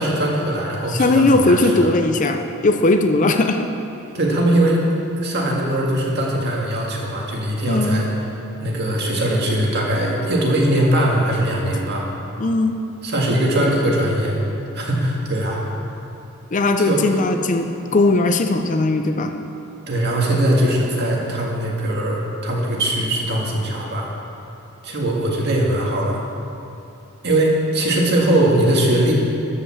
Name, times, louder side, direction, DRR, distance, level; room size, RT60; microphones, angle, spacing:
voice 1, 0.0-1.9 4.1-4.8 5.2-8.1 8.6-12.1 13.0-14.4 14.7-15.6 16.8-17.0 19.9-24.1 24.8-26.2 27.2-29.1, right 1 dB, 50° right, -2 dB, 1.9 m, -20 dB
voice 2, 0.9-3.7 7.7-8.0 12.4-12.7 16.5-19.3, left 2 dB, 35° left, 6 dB, 0.5 m, -18 dB
13.0 x 5.5 x 7.1 m, 2.7 s
head